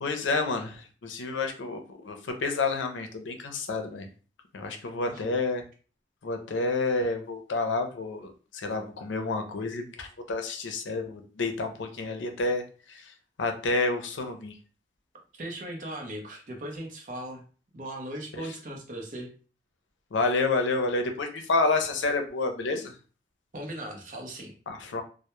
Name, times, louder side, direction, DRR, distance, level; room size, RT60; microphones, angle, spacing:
voice 1, 0.0-4.1 4.5-5.6 6.2-12.6 12.9-13.1 13.4-14.6 18.3-18.4 20.1-22.9 24.7-25.0, left 3 dB, 90° left, 5 dB, 0.5 m, -29 dB
voice 2, 4.9-5.4 15.3-17.4 17.7-19.3 23.5-24.5, right 1 dB, 45° right, 2 dB, 0.5 m, -38 dB
2.1 x 2.0 x 2.9 m, 0.37 s
head